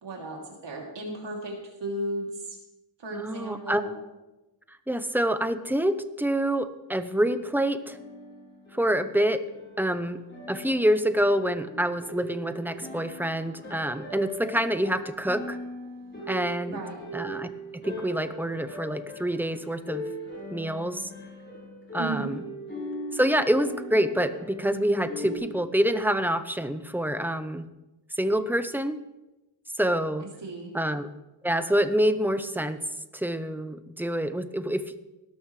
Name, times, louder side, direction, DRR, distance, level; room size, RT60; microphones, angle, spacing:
voice 1, 0.0-2.6 3.0-3.9 16.7-17.0 22.0-22.3 30.4-30.7, right 2 dB, 90° right, -1 dB, 3.0 m, -35 dB
voice 2, 3.1-3.8 4.9-8.0 8.7-9.4 9.8-10.2 10.5-15.6 16.3-16.8 17.1-20.0 20.5-21.1 21.9-22.4 23.1-27.7 28.2-29.0 29.8-30.3 30.7-31.1 31.4-32.8 33.1-34.8, equal, 5° right, 10 dB, 0.7 m, -26 dB
sound 1, 7.8-25.4, equal, 30° left, 4.0 m, -40 dB
17.5 x 12.5 x 3.2 m, 1.0 s
wide cardioid pair, 105°, 41 cm